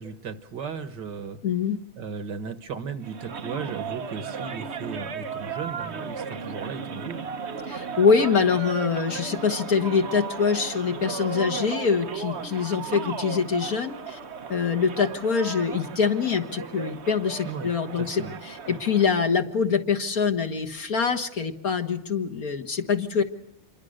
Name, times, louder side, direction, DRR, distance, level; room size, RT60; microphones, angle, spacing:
voice 1, 0.0-1.4 2.0-7.2 17.4-18.4 18.7-18.8, right 6 dB, 60° right, 12 dB, 1.9 m, -36 dB
voice 2, 1.4-1.8 7.7-14.2 14.5-23.2, left 6 dB, 45° left, 3 dB, 1.8 m, -24 dB
sound 1, 3.0-19.2, right 5 dB, 45° right, 1.0 m, -35 dB
27.5 x 23.0 x 6.5 m, 0.76 s
omnidirectional pair, 2.3 m